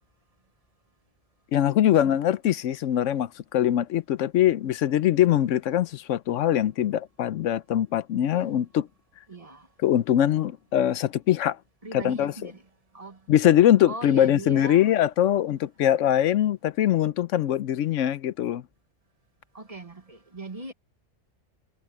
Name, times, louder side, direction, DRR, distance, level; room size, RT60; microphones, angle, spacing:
voice 1, 1.5-8.9 9.8-11.6 11.9-12.5 13.3-18.6, left 11 dB, 80° left, 1.0 m, -22 dB
voice 2, 9.3-9.7 11.8-12.6 12.9-13.2 13.9-14.9 19.5-20.7, right 2 dB, 30° right, 1.4 m, -39 dB
omnidirectional pair, 1.3 m